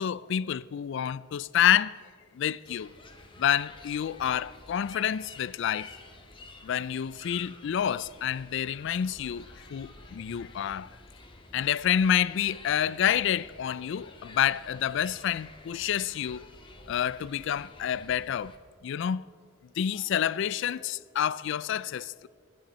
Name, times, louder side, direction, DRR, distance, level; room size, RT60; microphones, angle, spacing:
voice 1, 0.0-2.0 2.3-2.9 3.4-5.9 6.6-10.9 11.5-16.5 16.9-18.5 18.8-19.3 19.8-22.3, left 9 dB, 60° left, 0.3 m, -28 dB
sound 1, 2.6-18.6, left 3 dB, 25° left, 1.1 m, -50 dB
22.5 x 10.0 x 4.2 m
head